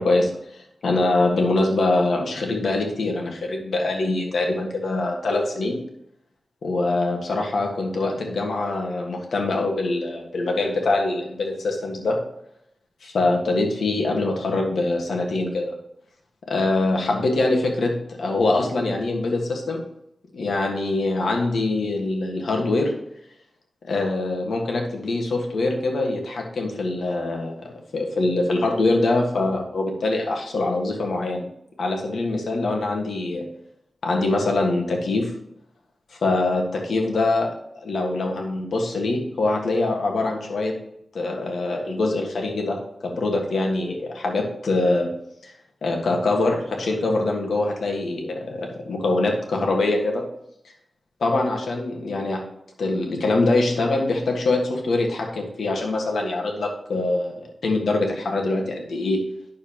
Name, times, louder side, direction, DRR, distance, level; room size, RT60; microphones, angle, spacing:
voice 1, 0.0-5.8 6.6-12.2 13.0-15.7 16.5-19.8 20.3-22.9 23.8-31.5 31.8-33.5 34.0-35.3 36.1-37.5 37.7-40.7 41.1-45.1 45.4-45.5 45.8-50.2 51.2-52.4 52.8-59.3, left 2 dB, 90° left, 1 dB, 1.6 m, -24 dB
9.4 x 6.8 x 3.0 m, 0.78 s
wide cardioid pair, 90°, 0 cm